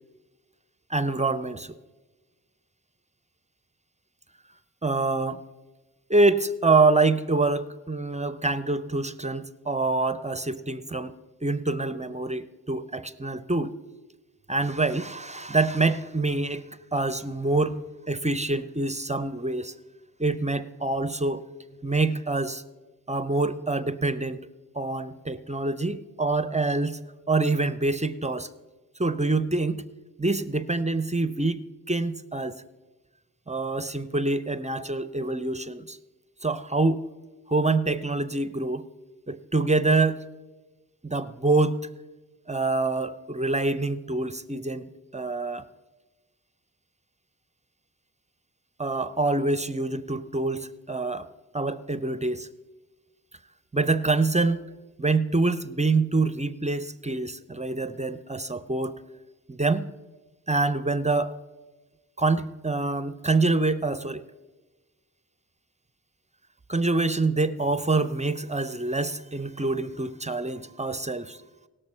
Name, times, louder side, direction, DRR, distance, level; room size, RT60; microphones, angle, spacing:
voice 1, 0.9-1.7 4.8-5.5 6.1-13.8 14.5-16.6 16.9-17.8 18.1-19.7 20.2-21.5 21.8-22.6 23.1-24.5 24.7-27.0 27.3-28.5 29.0-29.8 30.2-32.6 33.5-36.0 36.4-37.1 37.5-38.9 39.3-40.2 41.0-41.9 42.5-45.7 48.8-51.3 51.5-52.5 53.7-54.6 55.0-58.9 59.5-59.9 60.5-61.4 62.2-64.2 66.7-71.4, right 3 dB, 20° right, 14 dB, 0.6 m, -26 dB
18.5 x 6.6 x 4.4 m, 1.2 s
cardioid pair, 40°, 39 cm